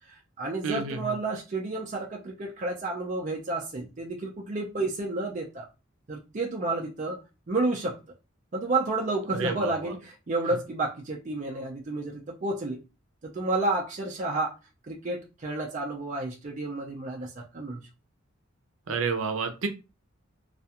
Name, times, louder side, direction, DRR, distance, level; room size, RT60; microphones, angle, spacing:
voice 1, 0.1-5.7 6.1-7.2 7.5-7.9 8.5-12.8 13.2-14.5 14.9-17.8, right 2 dB, 35° right, -1 dB, 0.4 m, -31 dB
voice 2, 0.6-1.1 9.4-9.9 18.9-19.7, right 5 dB, 85° right, 6 dB, 0.6 m, -30 dB
2.4 x 2.2 x 2.8 m, 0.29 s
head